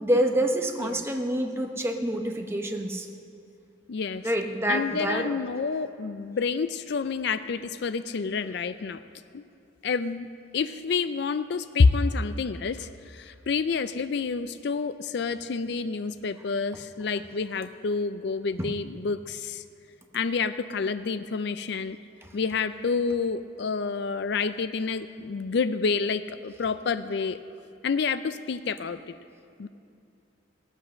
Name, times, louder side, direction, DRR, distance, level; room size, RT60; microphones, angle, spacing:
voice 1, 0.0-3.1 4.2-5.3 22.2-22.3, right 1 dB, 15° right, 3 dB, 1.0 m, -27 dB
voice 2, 3.9-4.3 4.7-9.0 9.3-9.4 9.8-10.3 10.5-19.6 20.1-22.0 22.3-27.4 27.8-29.0 29.6-29.7, left 4 dB, 55° left, 13 dB, 0.4 m, -28 dB
17.5 x 8.2 x 6.3 m, 2.6 s
head